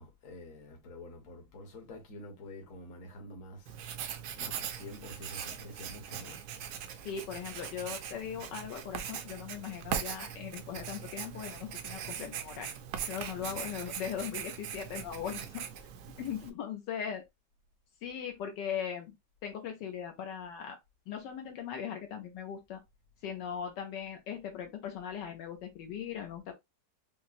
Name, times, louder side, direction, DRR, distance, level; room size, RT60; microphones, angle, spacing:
voice 1, 0.0-3.7 4.3-6.4 13.4-13.7, left 1 dB, 50° left, 1.4 m, -48 dB
Writing, 3.7-16.5, right 8 dB, 70° right, 1.1 m, -41 dB
voice 2, 7.0-12.7 13.1-15.6 16.2-17.2 18.0-19.1 19.4-20.8 21.1-22.8 23.2-26.5, left 8 dB, 80° left, 1.3 m, -39 dB
5.7 x 2.1 x 2.4 m
omnidirectional pair, 1.9 m